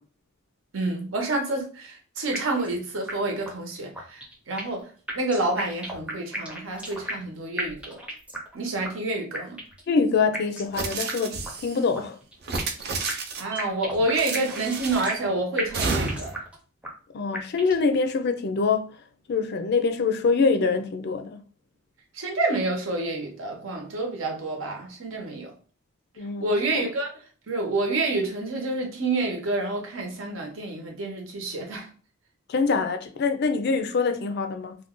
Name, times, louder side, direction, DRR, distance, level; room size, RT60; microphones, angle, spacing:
voice 1, 0.7-8.0 8.5-9.6 13.4-16.3 22.1-25.5 26.4-27.1 27.5-31.9, right 2 dB, 75° right, 0.9 m, -28 dB
sound 1, 2.3-2.8 3.1-3.2 3.5-3.6 4.0-4.8 5.1-7.3 7.6-8.6 8.8-8.9 9.3-9.9 10.3-10.8 11.1-11.2 11.5-11.6 11.9-12.8 13.1-15.3 15.6-16.6 16.8-16.9 17.3-17.9, right 1 dB, 5° right, 0.5 m, -34 dB
voice 2, 9.9-12.2 17.1-18.9 19.3-21.4 26.2-26.5 32.5-34.8, left 4 dB, 55° left, 0.4 m, -24 dB
sound 2, 10.7-11.8 12.4-13.6 14.1-15.2 15.7-16.4, right 4 dB, 50° right, 0.5 m, -30 dB
2.5 x 2.2 x 3.6 m
head